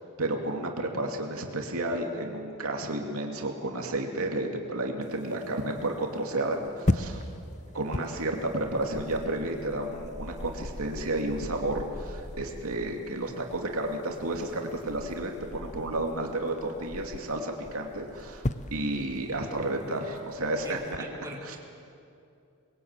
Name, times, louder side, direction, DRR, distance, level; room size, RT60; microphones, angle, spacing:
voice 1, 0.2-7.2 7.7-18.4 18.7-21.0 21.4-21.6, right 1 dB, 75° right, 1 dB, 2.7 m, -31 dB
sound 1, 5.0-21.0, left 1 dB, 30° left, 0.9 m, -38 dB
voice 2, 20.6-21.6, equal, 15° right, -3 dB, 4.0 m, -42 dB
28.0 x 21.5 x 9.1 m, 2.5 s
head